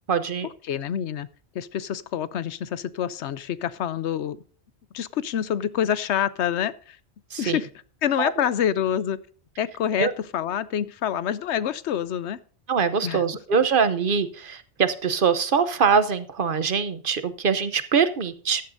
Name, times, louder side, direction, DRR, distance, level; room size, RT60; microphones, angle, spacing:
voice 1, 0.1-0.5 7.3-7.6 8.2-8.3 10.0-10.1 12.7-18.6, right 6 dB, 55° right, 12 dB, 0.9 m, -23 dB
voice 2, 0.6-1.3 1.5-4.4 4.9-7.0 7.4-7.7 8.0-9.2 9.6-12.4 13.0-13.2, left 9 dB, 90° left, 17 dB, 1.0 m, -27 dB
14.5 x 10.5 x 2.6 m, 0.44 s
omnidirectional pair, 1.1 m